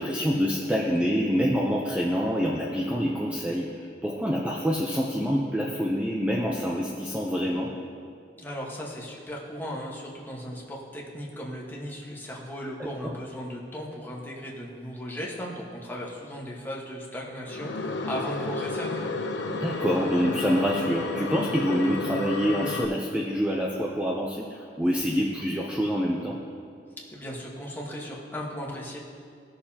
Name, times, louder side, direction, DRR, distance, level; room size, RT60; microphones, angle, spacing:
voice 1, 0.0-7.7 13.0-13.1 19.5-26.4, equal, 5° right, -2 dB, 0.6 m, -26 dB
voice 2, 8.3-19.1 27.0-29.0, equal, 10° left, -4 dB, 1.4 m, -37 dB
sound 1, 17.5-22.9, left 3 dB, 75° left, 0.6 m, -31 dB
18.0 x 6.7 x 2.9 m, 2.2 s
head